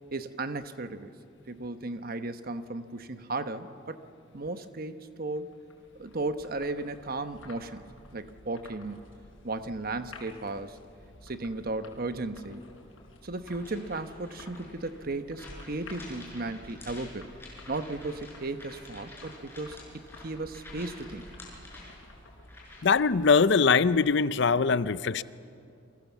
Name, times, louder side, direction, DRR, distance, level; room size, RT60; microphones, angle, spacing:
voice 1, 0.1-1.1 1.5-4.0 4.3-5.5 6.0-9.0 9.4-10.8 11.2-12.6 13.2-17.3 17.7-21.2, right 2 dB, 45° right, 10 dB, 1.1 m, -35 dB
sound 1, 5.4-24.4, left 2 dB, 80° left, 5.5 m, -53 dB
sound 2, 13.5-23.0, left 1 dB, 10° left, 6.6 m, -49 dB
voice 2, 22.8-25.2, left 5 dB, 60° left, 16 dB, 0.6 m, -22 dB
29.5 x 24.0 x 7.3 m, 2.5 s
head